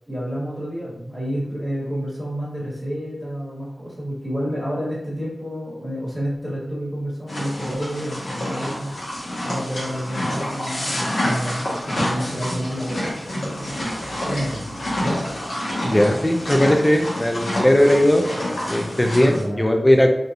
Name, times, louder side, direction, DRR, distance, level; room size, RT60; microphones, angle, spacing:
voice 1, 0.1-8.9 9.4-13.8 14.2-14.6 15.0-15.2 19.2-19.7, equal, 5° right, -6 dB, 1.4 m, -29 dB
sound 1, 7.3-19.4, left 1 dB, 85° left, 1.1 m, -28 dB
voice 2, 15.8-18.2 18.7-20.1, left 1 dB, 20° left, 3 dB, 0.5 m, -18 dB
3.1 x 2.7 x 2.4 m, 0.84 s
cardioid pair, 45°, 0 cm